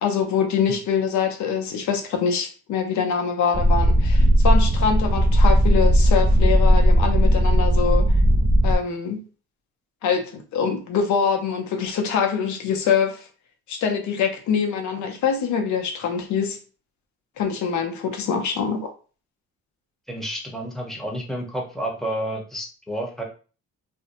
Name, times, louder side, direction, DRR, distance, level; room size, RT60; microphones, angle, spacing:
voice 1, 0.0-8.1 8.6-9.2 10.0-13.2 13.7-16.6 17.4-18.9, left 6 dB, 70° left, 0.7 m, -24 dB
sound 1, 3.5-8.7, equal, 15° right, 0.3 m, -17 dB
voice 2, 20.1-23.2, right 1 dB, ahead, 0.8 m, -30 dB
2.7 x 2.1 x 2.6 m
cardioid pair, 90°, 30 cm